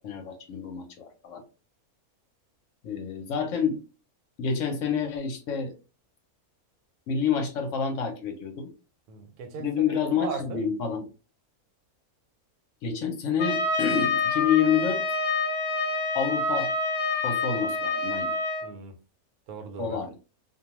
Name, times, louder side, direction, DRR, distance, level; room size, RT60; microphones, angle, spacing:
voice 1, 0.0-1.4 2.8-3.8 4.4-5.7 7.1-8.7 9.6-11.0 12.8-15.0 16.1-16.7 17.2-18.3 19.8-20.1, left 7 dB, 65° left, 0.9 m, -28 dB
voice 2, 9.1-9.7 10.1-10.6 18.6-18.9 19.5-20.0, right 5 dB, 90° right, 1.1 m, -37 dB
Trumpet, 13.4-18.7, left 3 dB, 50° left, 0.5 m, -27 dB
2.5 x 2.3 x 2.9 m
omnidirectional pair, 1.5 m